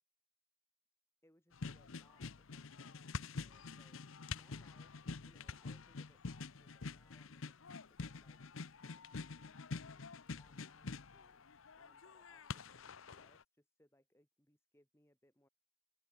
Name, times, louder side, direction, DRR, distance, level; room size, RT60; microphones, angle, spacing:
voice 1, 1.2-4.0 4.3-4.9 5.2-8.4 8.8-10.0 10.4-11.4 11.8-15.5, left 1 dB, 10° left, 3.1 m, -72 dB
sound 1, 1.5-13.4, left 4 dB, 70° left, 0.8 m, -47 dB
open air
head